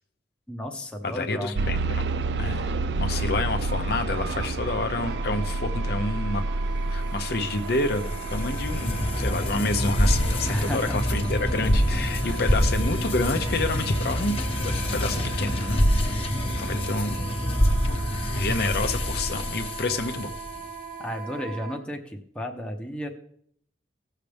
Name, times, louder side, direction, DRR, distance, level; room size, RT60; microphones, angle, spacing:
voice 1, 0.5-1.7 10.5-11.1 12.2-12.6 21.0-23.1, equal, 5° left, 2 dB, 0.9 m, -33 dB
voice 2, 1.0-2.0 2.4-2.7 3.0-6.4 6.9-17.3 17.8-18.0 18.3-20.3, left 2 dB, 60° left, 6 dB, 0.8 m, -29 dB
sound 1, 1.6-13.5 14.2-14.3 14.8-14.9, right 3 dB, 70° right, 0.4 m, -30 dB
Wind instrument woodwind instrument, 5.0-21.8, right 6 dB, 50° right, 0.9 m, -40 dB
sound 2, 7.2-20.6, equal, 30° left, 1.1 m, -26 dB
17.0 x 6.6 x 3.5 m, 0.68 s
head